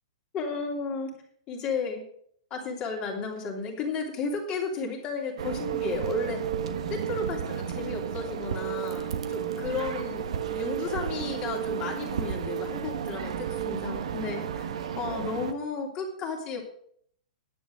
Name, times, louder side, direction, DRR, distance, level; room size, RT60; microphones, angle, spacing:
voice 1, 0.3-1.1 1.5-2.0 2.5-6.4 6.9-16.6, left 5 dB, 25° left, 1 dB, 3.0 m, -33 dB
sound 1, 5.4-15.5, right 8 dB, 70° right, 1.3 m, -32 dB
10.5 x 8.3 x 6.4 m, 0.65 s
hypercardioid pair, 150°, 3 cm